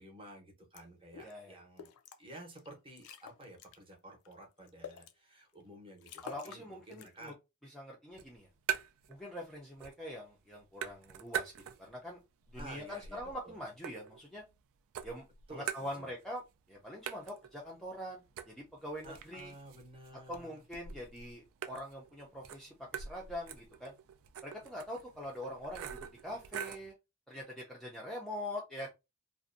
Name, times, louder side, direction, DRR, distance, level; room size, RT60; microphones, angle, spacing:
voice 1, 0.0-1.9 2.2-7.3 12.6-13.6 15.5-16.1 19.0-20.5, right 1 dB, 25° right, 0.8 m, -52 dB
sound 1, 0.7-0.8 1.1-1.3 1.8-2.2 2.6-2.7 3.0-3.8 4.3-5.1 5.6-5.7 6.0-6.6 6.9-7.3, left 7 dB, 70° left, 0.4 m, -49 dB
voice 2, 1.2-1.6 6.2-7.3 7.6-8.5 9.1-11.5 11.8-12.2 12.5-14.4 15.0-15.2 15.5-16.4 16.7-19.5 20.3-23.9 24.4-26.9 27.3-28.9, left 1 dB, ahead, 0.4 m, -44 dB
sound 2, 8.1-9.2 9.5-10.2 10.4-12.0 12.4-14.6 14.9-16.4 16.7-16.8 17.1-26.9, right 8 dB, 65° right, 0.3 m, -43 dB
2.5 x 2.1 x 2.5 m
head